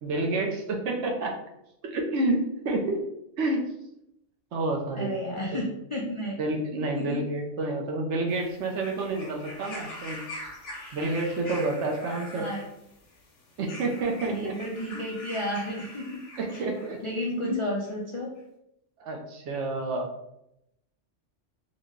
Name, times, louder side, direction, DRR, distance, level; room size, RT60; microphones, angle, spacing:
voice 1, 0.0-1.4 1.8-3.0 3.4-3.7 4.5-5.1 5.5-5.6 6.4-10.2 10.9-12.5 13.6-14.5 14.9-15.1 16.4-17.0 17.4-17.6 19.0-20.1, right 2 dB, 70° right, 1 dB, 0.9 m, -29 dB
voice 2, 4.9-6.4 7.0-7.2 12.3-12.6 14.2-16.2 16.5-16.7 17.0-18.3, equal, 45° left, -3 dB, 0.4 m, -32 dB
sound 1, 8.3-17.0 17.9-18.0, left 1 dB, 70° left, 1.1 m, -43 dB
3.8 x 2.1 x 3.5 m, 0.82 s
omnidirectional pair, 1.3 m